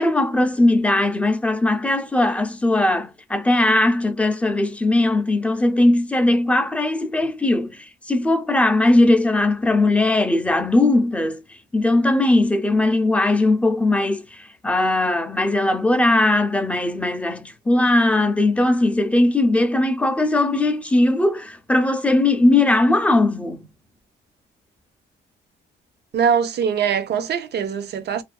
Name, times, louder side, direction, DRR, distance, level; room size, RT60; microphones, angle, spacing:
voice 1, 0.0-11.4 11.7-23.6, left 2 dB, 5° left, 0.5 m, -19 dB
voice 2, 26.1-28.2, right 7 dB, 55° right, 0.6 m, -22 dB
2.5 x 2.2 x 2.2 m
cardioid pair, 90°, 20 cm